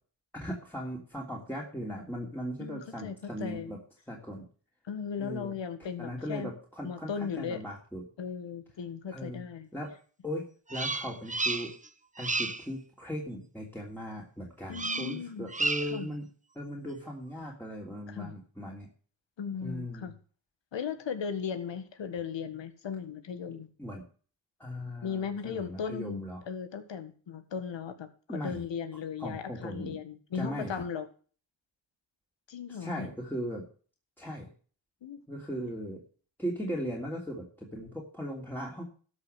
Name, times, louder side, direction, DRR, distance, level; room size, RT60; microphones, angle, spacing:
voice 1, 0.3-3.8 4.1-4.4 5.2-5.5 6.0-8.0 9.1-9.4 9.7-9.9 10.2-11.7 12.2-16.3 16.5-18.9 19.6-20.1 23.8-24.0 24.6-26.4 28.3-28.6 29.2-30.0 30.3-30.8 32.8-33.7 34.2-34.5 35.3-36.0 36.4-38.8, equal, 5° left, -3 dB, 3.1 m, -38 dB
voice 2, 2.6-3.8 4.8-6.5 6.8-7.6 8.2-9.7 14.7-15.5 15.9-16.1 18.1-18.4 19.4-20.1 20.7-23.7 25.0-31.1 32.5-33.1 35.0-35.2, left 6 dB, 75° left, 10 dB, 1.7 m, -37 dB
Bird vocalization bird call bird song, 10.7-11.9 12.2-12.7 14.7-15.2 15.5-16.0, right 3 dB, 15° right, 0.9 m, -32 dB
12.5 x 5.8 x 8.0 m, 0.41 s
cardioid pair, 70°, 44 cm